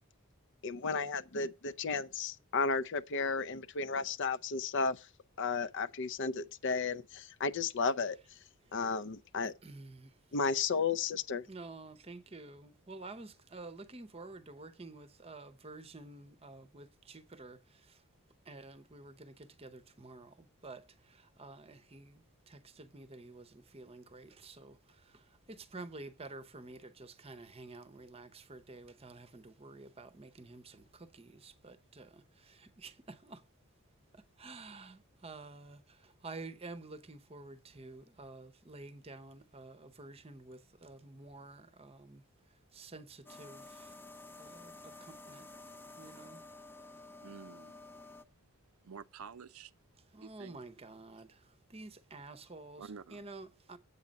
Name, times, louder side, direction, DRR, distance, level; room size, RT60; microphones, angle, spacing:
voice 1, 0.6-5.1 5.4-8.2 8.7-9.5 10.3-11.4, left 4 dB, 55° left, 0.5 m, -33 dB
voice 2, 9.4-10.2 11.5-18.0 18.5-33.4 34.1-42.2 42.7-43.9 44.4-45.5 46.0-46.4 50.1-53.8, right 3 dB, 25° right, 0.8 m, -50 dB
sound 1, 43.3-48.2, left 2 dB, 10° left, 0.5 m, -51 dB
voice 3, 47.2-47.8 48.8-49.7 50.2-50.6 52.8-53.2, right 6 dB, 75° right, 0.5 m, -49 dB
8.4 x 7.3 x 5.2 m
head